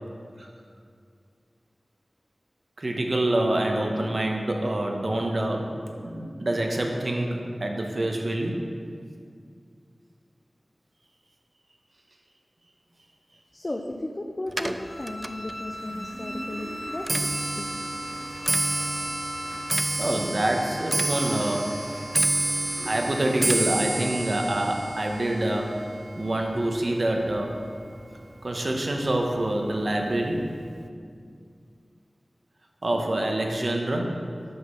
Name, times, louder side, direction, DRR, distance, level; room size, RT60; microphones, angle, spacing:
voice 1, 2.8-8.7 18.2-18.6 20.0-22.0 22.8-25.8 26.2-27.6 28.4-30.5 32.8-34.2, right 1 dB, 55° right, 2 dB, 0.9 m, -26 dB
voice 2, 13.5-17.2 17.6-17.7, left 1 dB, 40° left, 2 dB, 0.5 m, -35 dB
Clock, 14.5-27.8 28.2-28.6 29.4-29.5 29.8-30.2 30.5-30.6, right 2 dB, 30° right, 0.3 m, -30 dB
Bowed string instrument, 14.8-19.7, equal, 85° left, 0.8 m, -38 dB
6.0 x 5.6 x 5.6 m, 2.2 s
wide cardioid pair, 55°, 0 cm